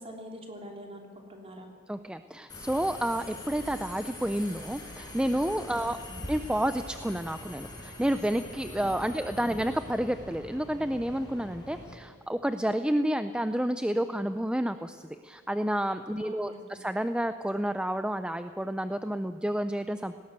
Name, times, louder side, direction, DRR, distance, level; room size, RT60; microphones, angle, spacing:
voice 1, 0.0-1.7 5.8-6.3 9.1-9.2 16.2-16.7, equal, 25° right, 2 dB, 3.1 m, -45 dB
voice 2, 1.9-6.0 6.3-20.2, right 1 dB, 5° right, 10 dB, 0.4 m, -30 dB
Subway metro underground, 2.5-11.9, left 1 dB, 20° left, 5.2 m, -43 dB
19.0 x 17.5 x 8.2 m, 2.1 s
head